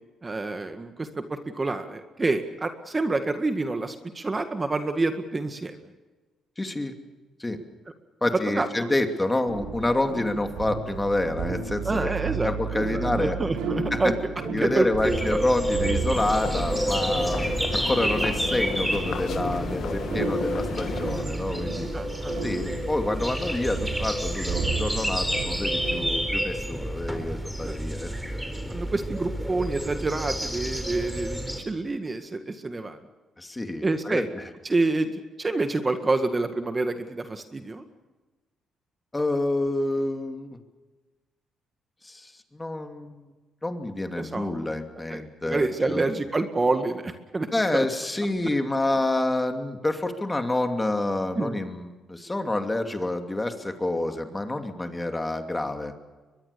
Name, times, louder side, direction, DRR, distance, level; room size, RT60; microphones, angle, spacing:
voice 1, 0.2-5.8 8.5-8.9 11.8-14.2 14.4-15.4 17.5-17.6 21.9-22.3 27.6-27.8 28.7-33.0 33.8-34.3 34.6-35.1 35.4-37.8 44.1-44.5 45.1-47.9 51.4-51.6, right 3 dB, 25° right, 7 dB, 1.8 m, -28 dB
voice 2, 6.6-6.9 7.4-7.6 8.2-12.1 12.4-13.4 13.9-14.0 14.5-17.5 17.7-21.9 22.4-28.4 33.4-34.5 39.1-40.6 42.0-43.2 43.6-46.1 47.5-55.9, left 2 dB, 15° left, 6 dB, 2.8 m, -28 dB
sound 1, 9.5-26.0, right 5 dB, 85° right, 5.0 m, -34 dB
sound 2, 15.0-31.6, equal, ahead, 4.2 m, -30 dB
sound 3, 16.1-21.2, left 8 dB, 70° left, 1.3 m, -35 dB
23.5 x 21.5 x 7.0 m, 1.3 s
cardioid pair, 90°, 0 cm